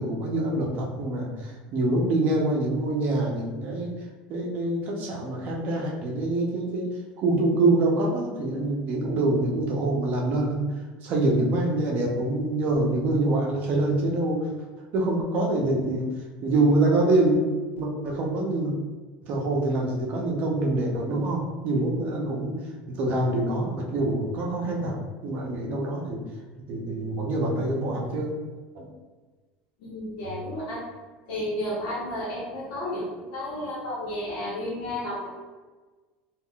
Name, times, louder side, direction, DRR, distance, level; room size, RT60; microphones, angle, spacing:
voice 1, 0.0-3.9 4.3-6.9 7.2-10.7 11.0-14.5 14.9-16.1 16.4-17.4 17.7-18.7 19.2-22.5 22.9-25.0 25.2-26.2 26.7-28.3 28.8-28.9, right 2 dB, 45° right, -1 dB, 0.6 m, -25 dB
voice 2, 29.8-30.9 31.3-35.3, left 1 dB, 70° left, -9 dB, 1.0 m, -32 dB
3.6 x 2.4 x 2.3 m, 1.3 s
cardioid pair, 155°, 4 cm